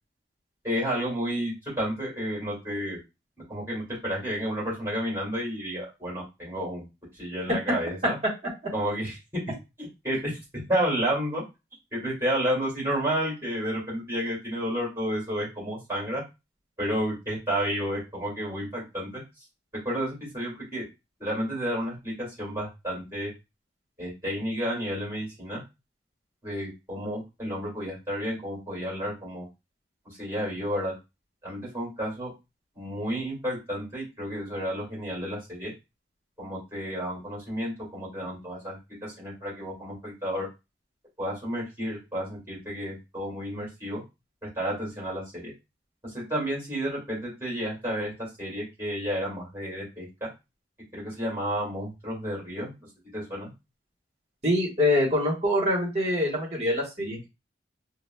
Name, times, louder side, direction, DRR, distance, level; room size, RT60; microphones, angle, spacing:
voice 1, 0.6-3.0 3.5-6.9 7.2-8.2 8.7-9.1 10.0-10.4 10.7-11.4 11.9-16.2 16.8-19.2 19.8-20.8 21.2-23.3 24.0-25.6 26.4-29.5 30.1-30.9 31.4-32.3 32.8-35.7 36.4-40.5 41.2-44.0 44.6-45.5 46.0-48.1 48.4-50.3 50.9-52.7 53.1-53.5, equal, 15° right, -6 dB, 2.0 m, -31 dB
voice 2, 54.4-57.3, left 1 dB, 35° right, -3 dB, 1.2 m, -25 dB
4.8 x 2.1 x 2.2 m, 0.25 s
head